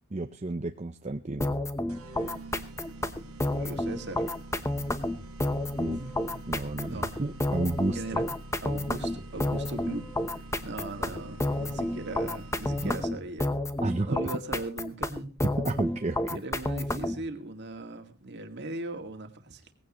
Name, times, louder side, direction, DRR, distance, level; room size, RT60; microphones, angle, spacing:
voice 1, 0.1-1.5 5.8-6.0 6.5-8.0 11.1-11.2 12.8-13.0 13.8-14.2 15.6-16.4, right 2 dB, 30° right, 7 dB, 0.6 m, -31 dB
sound 1, 1.4-17.3, left 1 dB, 15° left, 0.9 m, -30 dB
sound 2, 1.9-13.3, right 1 dB, 70° right, 1.8 m, -45 dB
voice 2, 3.5-4.3 5.9-6.4 6.8-7.1 7.9-8.3 8.6-10.1 10.3-13.5 14.1-15.4 16.3-19.6, right 2 dB, 50° right, 6 dB, 2.0 m, -39 dB
19.0 x 16.0 x 3.0 m, 0.32 s
head